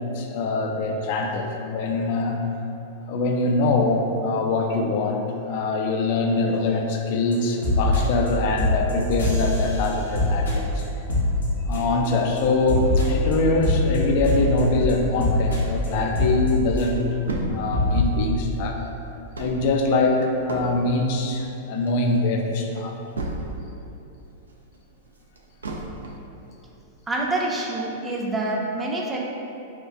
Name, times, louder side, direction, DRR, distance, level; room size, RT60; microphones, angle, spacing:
voice 1, 0.1-2.4 3.1-10.9 11.6-17.1 17.5-18.8 19.4-22.9, left 3 dB, 50° left, 2 dB, 0.4 m, -23 dB
sound 1, 7.3-7.4 7.6-8.3 8.6-12.1 12.4-17.1 17.4-17.5 17.7-18.0, left 1 dB, 75° left, 0.8 m, -23 dB
sound 2, 14.6-16.1 16.5-16.6 16.8-23.8 24.2-26.3 26.8-26.9 27.3-27.4, right 2 dB, 80° right, 0.4 m, -34 dB
voice 2, 27.1-29.2, right 2 dB, 15° right, -2 dB, 0.5 m, -26 dB
4.4 x 2.3 x 2.5 m, 2.8 s
figure-of-eight pair, 100°, 0 cm